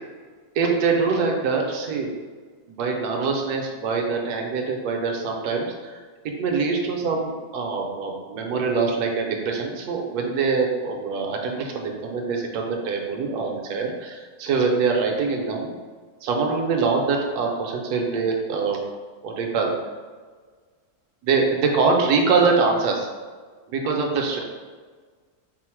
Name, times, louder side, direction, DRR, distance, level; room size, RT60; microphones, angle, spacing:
voice 1, 0.6-2.1 2.7-6.0 6.4-15.7 16.2-18.8 19.2-19.7 21.2-23.1 23.7-24.4, right 4 dB, 80° right, 1 dB, 1.1 m, -24 dB
4.4 x 2.0 x 4.4 m, 1.5 s
omnidirectional pair, 1.7 m